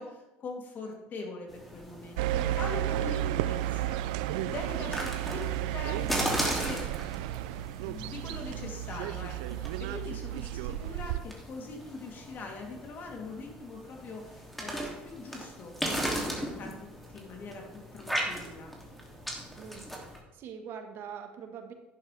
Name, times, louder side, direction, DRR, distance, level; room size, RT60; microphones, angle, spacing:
voice 1, 0.0-6.9 7.8-18.7, left 3 dB, 45° left, 0 dB, 3.1 m, -42 dB
sound 1, 1.5-20.2, equal, ahead, 2.7 m, -38 dB
sound 2, 2.2-11.2, right 13 dB, 80° right, 0.4 m, -33 dB
voice 2, 20.3-21.7, right 7 dB, 60° right, 6 dB, 1.5 m, -43 dB
11.0 x 10.0 x 3.4 m, 1.0 s
supercardioid pair, 85°, 4 cm